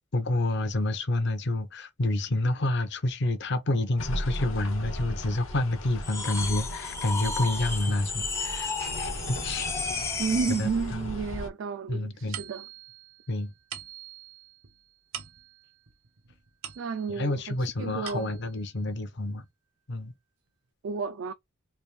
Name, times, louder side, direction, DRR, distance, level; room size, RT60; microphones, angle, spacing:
voice 1, 0.1-9.7 10.6-11.1 11.9-12.4 13.3-13.5 17.1-19.5 19.9-20.1, left 2 dB, 55° left, 0.6 m, -29 dB
sound 1, 4.0-11.5, equal, 70° left, 1.0 m, -37 dB
sound 2, 6.0-10.7, left 4 dB, 15° left, 0.5 m, -33 dB
voice 2, 10.2-12.6 16.8-18.3 20.8-21.3, right 5 dB, 65° right, 0.3 m, -31 dB
sound 3, 12.3-17.3 17.8-18.6, right 10 dB, 85° right, 0.7 m, -44 dB
3.3 x 2.6 x 3.1 m
head